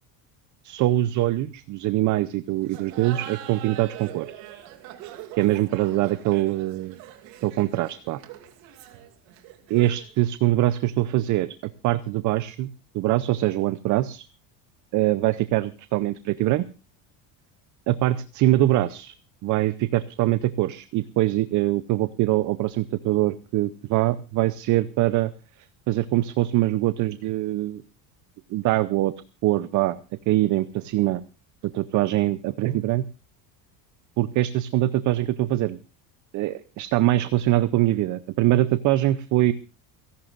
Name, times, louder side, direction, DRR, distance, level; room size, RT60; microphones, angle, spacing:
voice 1, 0.6-4.3 5.4-7.0 7.4-8.2 9.7-12.7 12.9-14.2 14.9-16.6 17.9-19.1 19.4-25.3 25.9-27.8 28.5-29.1 29.4-30.0 30.3-31.2 31.6-33.0 34.2-35.8 36.3-39.5, right 15 dB, 40° right, 15 dB, 0.6 m, -23 dB
Laughter, 2.6-10.1, right 12 dB, 75° right, 2.7 m, -42 dB
28.5 x 11.5 x 2.5 m, 0.32 s
cardioid pair, 155°, 45 cm